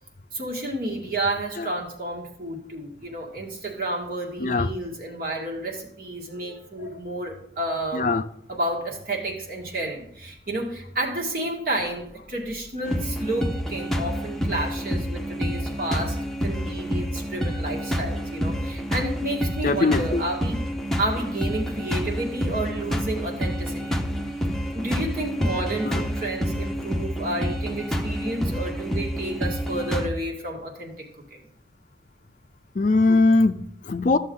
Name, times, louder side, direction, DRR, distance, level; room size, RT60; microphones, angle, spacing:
voice 1, 0.3-8.2 8.5-20.6 21.0-24.0 24.7-31.4, right 1 dB, 50° right, 2.0 m, -31 dB
voice 2, 7.9-8.2 19.6-20.2 25.8-26.0 32.8-34.2, left 3 dB, 45° left, 0.4 m, -21 dB
sound 1, 12.8-30.1, equal, ahead, 0.8 m, -28 dB
13.5 x 6.9 x 3.8 m
head